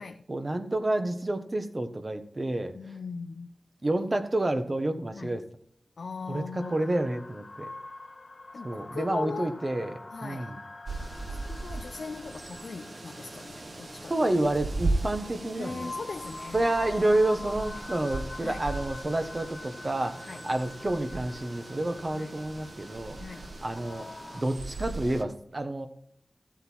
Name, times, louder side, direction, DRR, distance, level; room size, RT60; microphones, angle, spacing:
voice 1, 0.3-2.7 3.8-5.4 6.3-7.7 8.6-9.9 10.2-10.6 14.1-15.9 16.5-23.2 23.6-24.1 24.3-25.9, right 1 dB, 35° right, 1.4 m, -29 dB
voice 2, 2.7-3.5 5.1-5.4 6.0-7.0 8.5-9.6 10.1-10.5 11.3-14.1 15.5-16.6 18.4-18.6 20.3-20.4 22.1-22.4 23.2-23.5, left 4 dB, 90° left, 0.6 m, -40 dB
sound 1, 6.6-24.4, left 2 dB, 45° left, 0.8 m, -45 dB
sound 2, 10.9-25.2, right 2 dB, 55° right, 1.3 m, -38 dB
15.0 x 7.8 x 4.7 m
wide cardioid pair, 90°, 0 cm